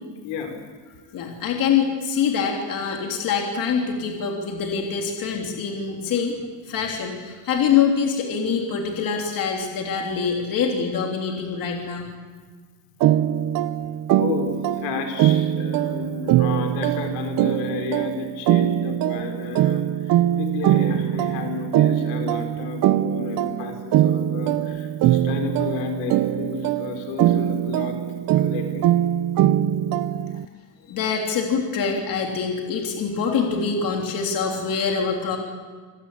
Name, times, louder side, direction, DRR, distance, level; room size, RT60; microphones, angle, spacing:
voice 1, 0.2-0.6 14.1-28.0 28.3-28.9, left 7 dB, 75° left, 5 dB, 4.8 m, -32 dB
voice 2, 1.1-6.3 6.6-12.1 30.1-30.2 30.8-35.4, left 6 dB, 40° left, 1 dB, 3.3 m, -24 dB
sound 1, 13.0-30.5, right 12 dB, 45° right, 0.7 m, -22 dB
26.5 x 17.5 x 8.5 m, 1.4 s
cardioid pair, 165°, 49 cm